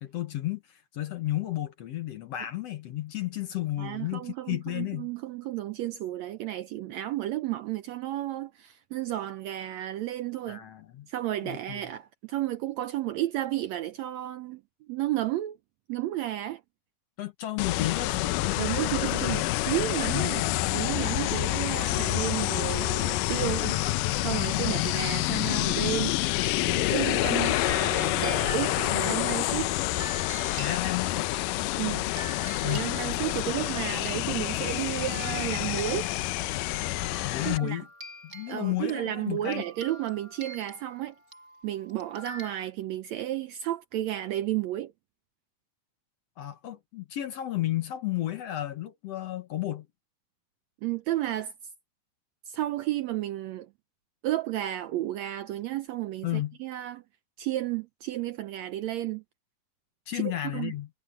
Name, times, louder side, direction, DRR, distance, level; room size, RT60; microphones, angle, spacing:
voice 1, 0.0-5.1 10.5-11.1 11.4-11.8 17.2-18.6 18.9-19.1 20.1-20.5 24.6-24.8 30.6-31.3 32.6-32.9 37.2-37.9 38.2-39.6 46.4-49.9 56.2-56.6 60.1-60.9, left 14 dB, 60° left, 1.9 m, -32 dB
voice 2, 3.8-10.6 11.1-14.6 14.9-15.6 15.9-16.6 18.6-20.4 20.7-23.8 24.2-26.2 26.6-29.7 31.8-32.1 32.6-36.1 37.4-37.8 38.5-41.1 41.6-44.9 50.8-51.5 52.5-53.7 54.2-57.0 57.4-59.2 60.1-60.7, right 14 dB, 75° right, 1.6 m, -32 dB
sound 1, 17.6-37.6, left 17 dB, 85° left, 2.2 m, -28 dB
sound 2, 25.4-31.6 32.2-33.9 34.4-34.5 34.7-42.5, right 1 dB, 25° right, 5.3 m, -46 dB
omnidirectional pair, 3.7 m